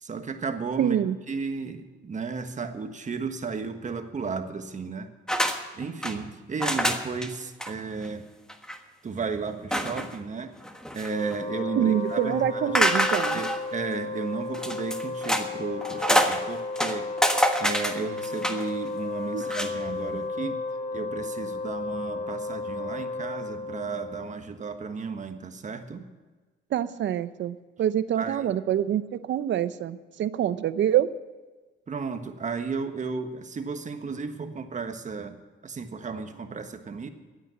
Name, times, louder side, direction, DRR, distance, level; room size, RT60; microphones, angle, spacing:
voice 1, 0.0-1.0 1.3-5.1 5.8-8.3 9.0-10.5 10.9-12.8 13.3-17.1 17.6-20.6 20.9-26.0 28.2-28.5 31.9-35.4 35.6-37.1, right 5 dB, 40° right, 7 dB, 1.4 m, -34 dB
voice 2, 0.8-1.2 11.7-13.4 19.3-19.4 26.7-31.1, right 10 dB, 65° right, 14 dB, 0.7 m, -26 dB
sound 1, 5.3-5.6 5.8-6.1 6.6-7.3 7.6-7.7 8.0-8.1 8.5-8.8 9.7-10.2 10.6-11.4 12.7-13.6 14.5-15.5 15.8-16.4 16.7-18.7 19.4-19.7, equal, 5° left, 1.4 m, -26 dB
Wind instrument woodwind instrument, 11.0-24.4, left 3 dB, 35° left, 1.9 m, -34 dB
14.0 x 9.1 x 8.3 m, 1.3 s
cardioid pair, 90°, 20 cm